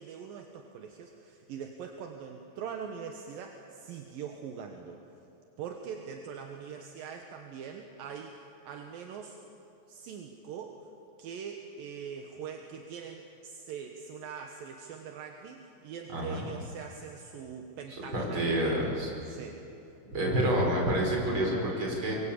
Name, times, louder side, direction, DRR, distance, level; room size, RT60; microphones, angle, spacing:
voice 1, 0.0-5.0 5.6-9.4 9.9-10.9 11.2-18.8 19.3-19.6, right 7 dB, 65° right, 4 dB, 2.4 m, -42 dB
voice 2, 16.1-16.4 18.1-19.3 20.1-22.2, right 1 dB, 25° right, -1 dB, 5.6 m, -28 dB
25.0 x 23.5 x 8.5 m, 2.9 s
omnidirectional pair, 5.4 m